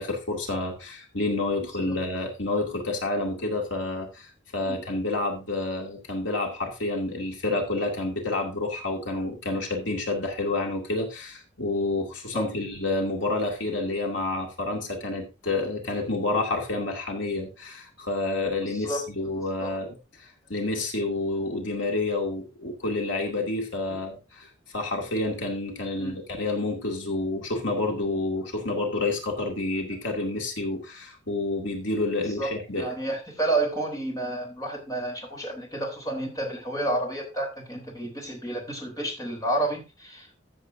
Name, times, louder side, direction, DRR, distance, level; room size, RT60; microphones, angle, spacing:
voice 1, 0.0-32.9, left 2 dB, 70° left, 1 dB, 2.3 m, -29 dB
voice 2, 18.6-19.1 19.3-19.8 23.9-24.0 25.9-26.2 32.4-40.4, right 2 dB, 20° left, 1 dB, 3.5 m, -31 dB
14.5 x 7.6 x 2.6 m, 0.27 s
head